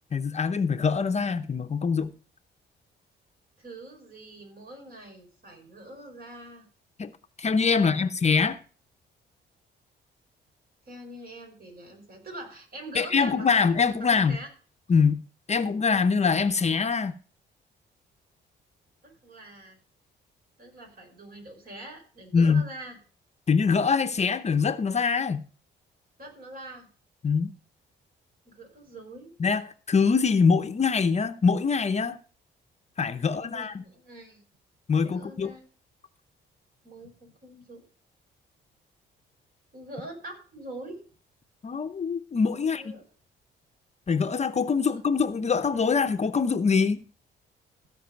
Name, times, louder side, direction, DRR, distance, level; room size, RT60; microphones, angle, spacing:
voice 1, 0.1-2.1 7.0-7.1 7.4-8.6 12.9-14.4 14.9-17.1 22.3-22.6 23.5-25.4 27.2-27.5 29.4-32.2 33.0-33.8 34.9-35.5 41.6-43.0 44.1-47.0, left 5 dB, 35° left, 0.7 m, -24 dB
voice 2, 3.6-6.7 7.8-8.1 10.9-13.7 14.0-14.5 19.0-19.8 20.6-23.0 26.2-26.9 28.5-29.3 33.3-34.4 34.9-35.6 36.8-37.8 39.7-41.0 42.6-43.0, right 1 dB, 50° right, 5.1 m, -44 dB
15.5 x 5.4 x 5.2 m
cardioid pair, 90°, 20 cm